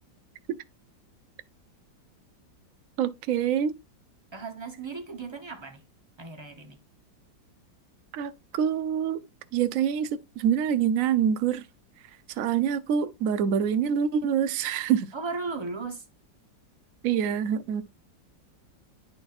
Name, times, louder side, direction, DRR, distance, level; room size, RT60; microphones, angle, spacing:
voice 1, 3.0-3.7 8.1-9.2 9.5-11.7 12.3-15.1 17.0-17.8, right 8 dB, 65° right, 0.8 m, -26 dB
voice 2, 4.3-5.8 6.2-6.8 15.1-16.1, right 4 dB, 20° right, 0.7 m, -36 dB
11.5 x 4.2 x 2.5 m
omnidirectional pair, 2.1 m